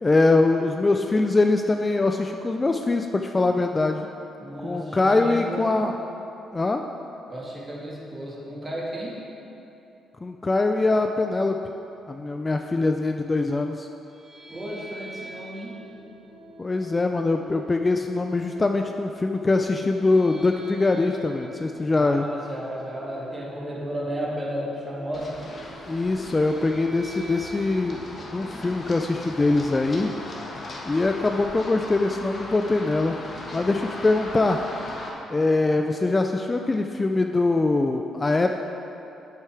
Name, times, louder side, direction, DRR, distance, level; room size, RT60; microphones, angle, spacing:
voice 1, 0.0-4.1 4.6-5.9 6.5-6.8 10.2-11.6 12.1-13.9 16.6-22.3 25.9-28.0 28.3-30.1 30.9-33.2 33.5-34.6 35.3-38.5, left 3 dB, 25° left, 5 dB, 0.3 m, -23 dB
voice 2, 4.4-5.8 7.3-9.2 14.5-15.8 21.9-25.4, equal, 25° right, -4 dB, 1.8 m, -33 dB
sound 1, 14.0-30.2, right 2 dB, 45° right, 1.9 m, -46 dB
Run, 25.1-35.1, left 2 dB, 45° left, 1.4 m, -38 dB
8.2 x 7.5 x 3.4 m, 2.9 s
cardioid pair, 90°, 0 cm